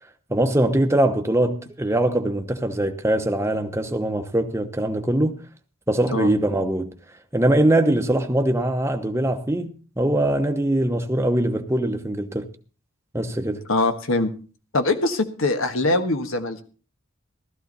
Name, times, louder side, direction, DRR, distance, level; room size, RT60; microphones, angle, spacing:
voice 1, 0.3-5.3 5.9-6.9 7.3-12.5 13.1-13.7, right 1 dB, 15° right, 0.9 m, -22 dB
voice 2, 13.7-14.3 14.7-16.6, left 2 dB, 70° left, 1.6 m, -22 dB
15.5 x 13.0 x 4.1 m
head